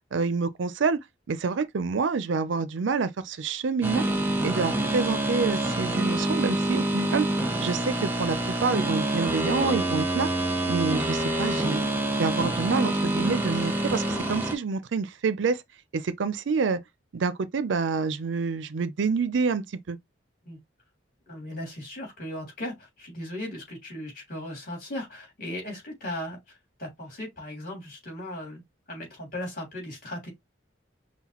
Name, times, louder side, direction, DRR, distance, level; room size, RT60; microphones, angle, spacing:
voice 1, 0.1-1.0 1.3-4.0 4.4-7.3 7.6-10.3 10.7-11.8 12.1-15.6 15.9-16.8 17.1-20.0, right 4 dB, 70° right, 0.5 m, -27 dB
sound 1, 3.8-14.5, right 1 dB, 10° right, 0.7 m, -27 dB
voice 2, 21.3-28.6 28.9-30.3, left 1 dB, 45° left, 3.1 m, -37 dB
5.7 x 2.2 x 2.9 m
head